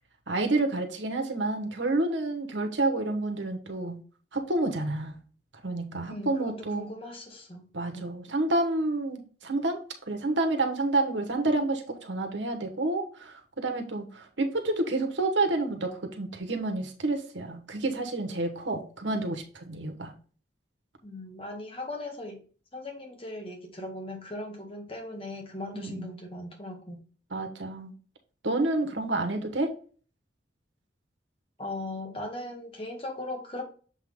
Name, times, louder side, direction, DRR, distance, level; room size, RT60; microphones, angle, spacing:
voice 1, 0.3-4.0 4.3-5.1 5.6-6.9 7.7-9.8 10.1-20.1 25.7-26.1 27.3-27.9 28.4-29.7, right 2 dB, 85° right, 4 dB, 1.3 m, -29 dB
voice 2, 6.1-7.6 7.9-8.1 21.0-22.4 22.7-27.0 31.6-33.6, left 2 dB, 30° left, 3 dB, 1.4 m, -38 dB
7.2 x 3.7 x 3.6 m, 0.39 s
head